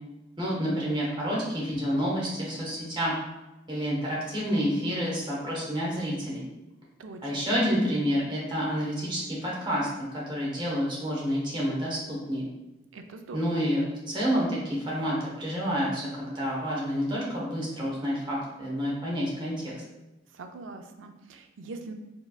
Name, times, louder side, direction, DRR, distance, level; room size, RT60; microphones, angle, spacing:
voice 1, 0.4-3.1 3.7-6.5 7.2-12.5 13.3-19.7, equal, 25° right, -5 dB, 1.1 m, -29 dB
voice 2, 7.0-7.5 12.9-13.6 20.3-21.9, right 3 dB, 85° right, 6 dB, 0.4 m, -42 dB
4.7 x 3.4 x 2.3 m, 1.0 s
head